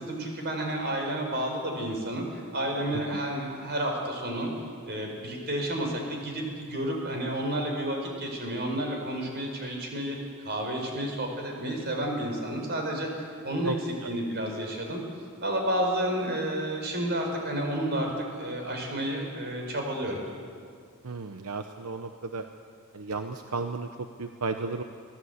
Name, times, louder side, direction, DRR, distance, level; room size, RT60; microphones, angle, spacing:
voice 1, 0.0-4.5 4.9-10.2 10.4-13.7 14.1-15.0 15.4-20.2, right 1 dB, 50° right, 2 dB, 4.9 m, -31 dB
voice 2, 21.0-22.5 22.9-24.8, right 3 dB, 85° right, 6 dB, 0.9 m, -34 dB
24.0 x 16.0 x 8.2 m, 2.2 s
head